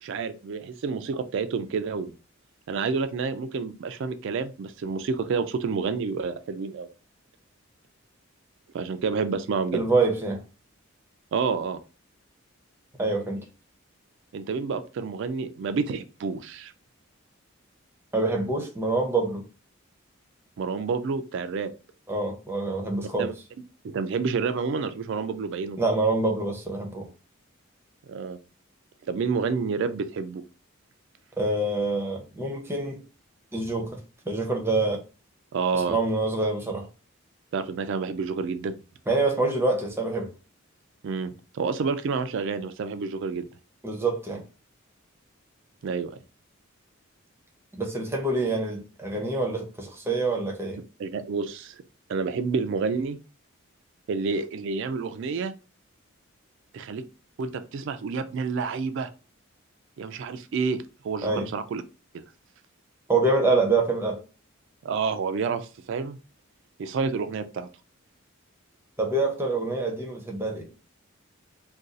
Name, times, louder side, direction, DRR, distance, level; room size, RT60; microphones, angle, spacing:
voice 1, 0.0-2.1 2.7-6.9 8.7-9.8 11.3-11.8 14.3-16.7 20.6-21.7 23.2-23.3 23.8-25.8 28.1-28.4 29.1-30.4 35.5-36.0 37.5-38.8 41.0-43.5 45.8-46.1 51.0-51.8 52.1-53.2 54.1-55.6 56.7-57.0 57.4-59.1 60.0-61.8 62.1-62.2 64.8-66.2 66.8-67.7, right 5 dB, 60° right, 0.3 m, -29 dB
voice 2, 9.7-10.4 13.0-13.4 18.1-19.4 22.1-23.3 25.8-27.1 31.4-33.0 33.5-34.0 34.3-35.0 35.9-36.9 39.1-40.3 43.8-44.4 47.7-50.8 61.2-61.5 63.1-64.2 69.0-70.7, right 2 dB, 10° right, 0.6 m, -26 dB
2.5 x 2.3 x 3.8 m
head